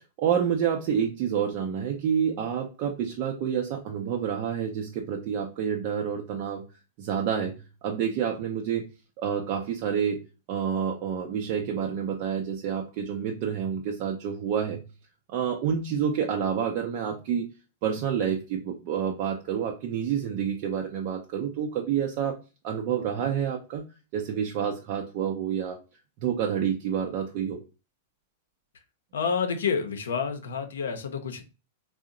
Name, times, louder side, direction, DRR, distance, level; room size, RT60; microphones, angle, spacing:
voice 1, 0.0-6.6 7.0-8.9 9.2-10.2 10.5-14.9 15.3-17.5 17.8-22.4 22.6-23.8 24.1-25.8 26.2-27.6, right 8 dB, 50° right, 0.5 m, -28 dB
voice 2, 29.1-31.4, left 6 dB, 75° left, 0.6 m, -29 dB
2.7 x 2.0 x 3.7 m
hypercardioid pair, 105°, 0 cm